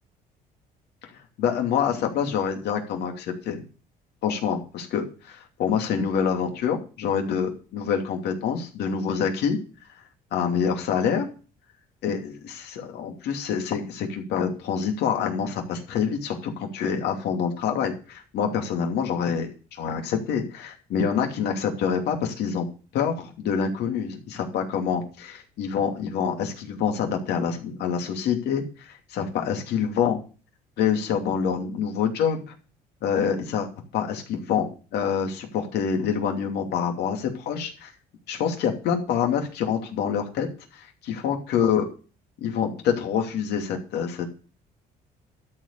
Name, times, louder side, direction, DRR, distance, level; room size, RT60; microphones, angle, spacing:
voice 1, 1.4-3.6 4.2-9.6 10.3-11.3 12.0-22.7 22.9-30.2 30.8-32.5 33.0-37.9 38.3-40.5 40.7-41.9 42.4-44.3, left 7 dB, 75° left, 3 dB, 2.8 m, -26 dB
12.5 x 5.0 x 8.3 m, 0.36 s
cardioid pair, 110°, 17 cm